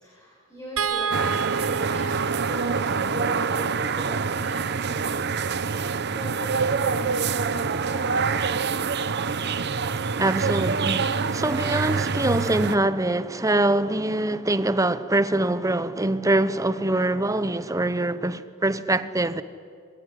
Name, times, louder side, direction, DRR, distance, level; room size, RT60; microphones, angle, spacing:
voice 1, 0.0-5.6 6.1-9.0, equal, 15° left, 4.9 m, -40 dB
sound 1, 0.8-7.1 8.6-8.8 9.1-9.3, right 6 dB, 70° right, 1.1 m, -33 dB
sound 2, 1.1-12.8, right 5 dB, 55° right, 0.8 m, -26 dB
voice 2, 10.2-19.4, right 2 dB, 15° right, 0.9 m, -24 dB
26.5 x 22.5 x 10.0 m
head